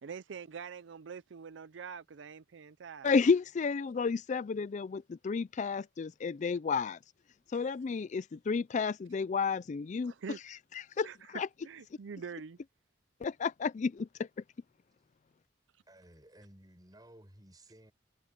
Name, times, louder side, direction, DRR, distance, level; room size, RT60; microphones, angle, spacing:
voice 1, 0.0-3.1 7.6-7.7 10.0-10.4 11.0-11.3 11.6-12.6, right 6 dB, 75° right, 0.5 m, -45 dB
voice 2, 3.0-7.0 7.5-10.1 10.5-11.5 13.2-14.3, left 5 dB, 40° left, 0.4 m, -31 dB
voice 3, 15.9-17.9, right 1 dB, 20° right, 6.6 m, -56 dB
head